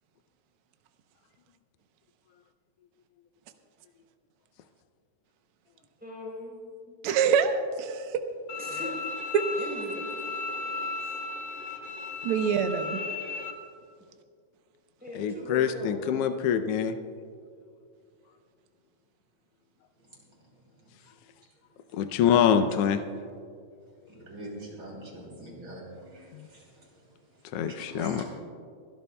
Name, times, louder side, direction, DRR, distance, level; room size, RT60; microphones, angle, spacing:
voice 1, 6.0-6.6 6.9-7.0 8.6-9.2 9.5-11.2 15.0-16.4, equal, 5° right, -4 dB, 3.7 m, -41 dB
voice 2, 7.0-8.2 9.3-9.4 12.2-13.0, right 7 dB, 70° right, 7 dB, 1.4 m, -25 dB
Bowed string instrument, 8.5-13.5, left 4 dB, 65° left, 1.1 m, -35 dB
voice 3, 15.1-17.0 21.9-23.0 27.5-28.2, left 8 dB, 90° left, 9 dB, 1.3 m, -25 dB
voice 4, 22.0-22.5 24.0-26.9 27.7-28.2, right 1 dB, 40° right, -2 dB, 3.3 m, -43 dB
28.5 x 12.5 x 2.2 m, 2.2 s
omnidirectional pair, 3.4 m